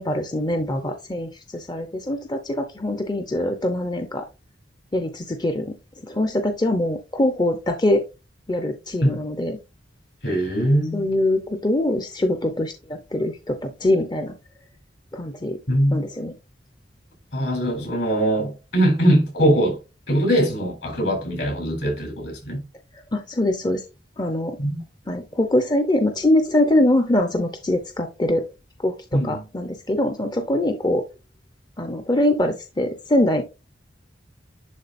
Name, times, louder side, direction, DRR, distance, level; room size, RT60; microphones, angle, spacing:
voice 1, 0.0-4.3 4.9-5.7 6.0-8.0 8.5-9.6 10.9-14.3 15.1-15.6 15.9-16.3 23.1-23.8 24.2-24.6 25.1-28.4 28.8-31.0 31.8-33.4, left 1 dB, 20° left, 0.7 m, -23 dB
voice 2, 10.2-11.0 15.7-16.0 17.3-19.8 20.1-22.6 24.6-24.8 29.1-29.5, right 1 dB, 60° left, 4.3 m, -21 dB
11.0 x 3.7 x 2.6 m
head